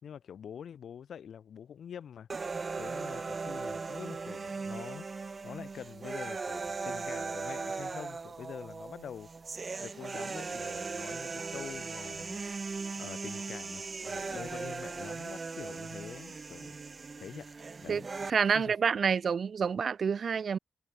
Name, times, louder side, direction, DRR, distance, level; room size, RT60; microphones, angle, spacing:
voice 1, 0.0-2.3 2.8-9.3 9.8-12.4 12.9-16.7 17.2-17.5 17.8-18.1 18.5-18.7, left 8 dB, 80° left, 2.6 m, -45 dB
sound 1, 2.3-18.3, right 4 dB, 40° right, 0.8 m, -38 dB
Crying sobbing, 11.3-15.2 15.6-16.6, left 2 dB, 15° left, 5.8 m, -60 dB
voice 2, 18.3-20.6, right 6 dB, 60° right, 0.3 m, -28 dB
cardioid pair, 85°, 0 cm